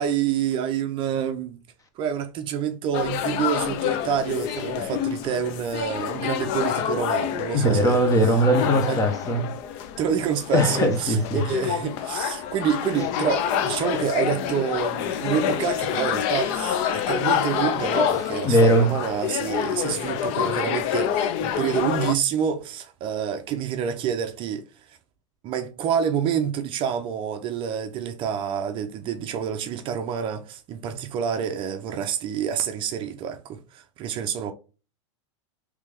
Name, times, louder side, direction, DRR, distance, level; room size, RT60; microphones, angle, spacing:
voice 1, 0.0-1.6 2.0-8.0 8.3-8.4 8.9-9.0 10.0-25.0 25.4-34.5, right 8 dB, 35° right, 0.5 m, -28 dB
sound 1, 2.9-22.1, left 9 dB, 45° left, 0.5 m, -27 dB
voice 2, 7.5-9.5 10.5-11.4 18.4-18.9, equal, 20° left, 0.8 m, -20 dB
3.3 x 3.3 x 3.4 m
supercardioid pair, 135°, 16 cm